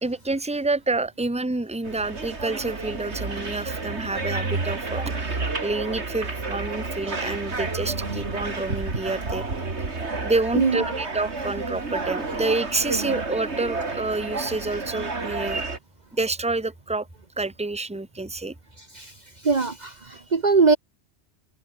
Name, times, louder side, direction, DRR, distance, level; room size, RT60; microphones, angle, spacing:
voice 1, 0.0-9.6 10.2-15.6 16.1-17.1 17.4-18.5, right 2 dB, 5° right, 1.3 m, -28 dB
sound 1, 1.8-15.8, right 3 dB, 85° right, 3.1 m, -30 dB
voice 2, 10.5-10.9 18.9-19.1 19.4-20.8, right 4 dB, 40° right, 1.1 m, -21 dB
omnidirectional pair, 1.1 m